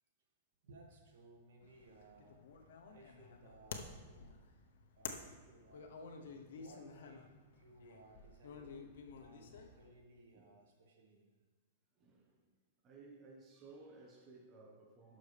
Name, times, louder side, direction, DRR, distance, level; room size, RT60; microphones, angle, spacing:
voice 1, 0.6-2.4 2.9-4.2 5.0-5.9 6.4-8.8 9.2-11.3, right 2 dB, 75° right, 0 dB, 2.0 m, -61 dB
sound 1, 1.6-9.9, left 5 dB, 75° left, 1.0 m, -51 dB
voice 2, 5.7-6.4 10.3-10.4 11.9-12.6 12.8-15.2, right 3 dB, 25° right, 0 dB, 1.2 m, -59 dB
11.5 x 6.3 x 3.5 m, 1.4 s
hypercardioid pair, 140°, 0 cm